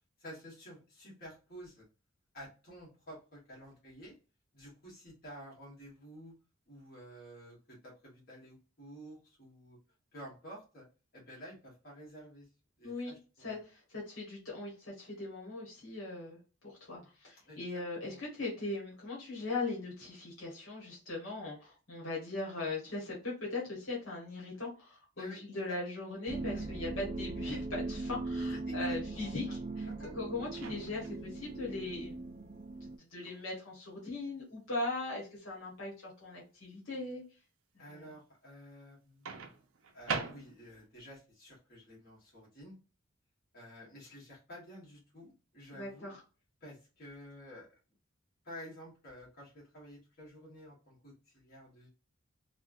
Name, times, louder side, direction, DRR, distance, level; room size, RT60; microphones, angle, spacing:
voice 1, 0.2-1.8 2.3-4.1 4.5-6.3 6.7-9.8 10.1-10.8 11.1-12.5 12.8-13.6 17.4-17.8 18.1-18.2 25.2-25.4 25.7-25.8 26.5-26.6 28.6-29.3 29.9-30.3 37.8-39.4 39.9-42.8 43.5-46.1 46.6-47.7 48.4-51.9, equal, 50° left, -5 dB, 1.6 m, -51 dB
voice 2, 13.4-16.4 16.6-29.4 29.8-29.9 30.1-32.2 32.8-37.2 37.8-38.1 45.7-46.2, left 2 dB, 70° left, -4 dB, 1.4 m, -39 dB
sound 1, 26.3-33.0, right 2 dB, 35° right, 0.3 m, -39 dB
Microwave oven, 30.5-31.2 33.2-33.4 39.3-40.9, right 5 dB, 90° right, 0.6 m, -40 dB
3.3 x 2.3 x 2.6 m, 0.34 s
head